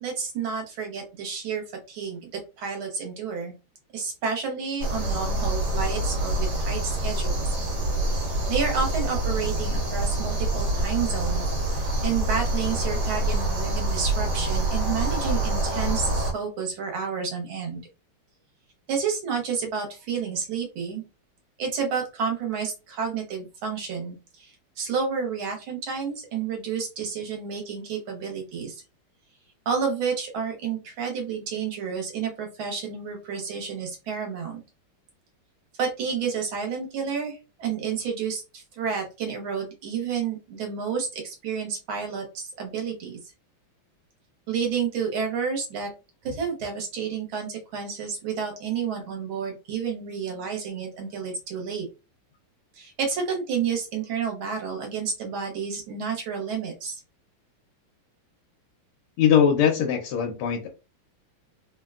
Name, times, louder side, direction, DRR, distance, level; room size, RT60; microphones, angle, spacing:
voice 1, 0.0-3.5 3.9-7.5 8.5-11.4 11.7-17.8 18.9-21.0 21.6-28.8 29.7-34.6 35.8-43.2 44.5-45.9 46.2-51.9 52.8-57.0, right 6 dB, 70° right, 2 dB, 1.7 m, -30 dB
sound 1, 4.8-16.3, right 2 dB, 50° right, 1.5 m, -26 dB
voice 2, 59.2-60.7, left 8 dB, 85° left, 2 dB, 1.6 m, -21 dB
3.8 x 2.2 x 2.3 m, 0.29 s
omnidirectional pair, 2.4 m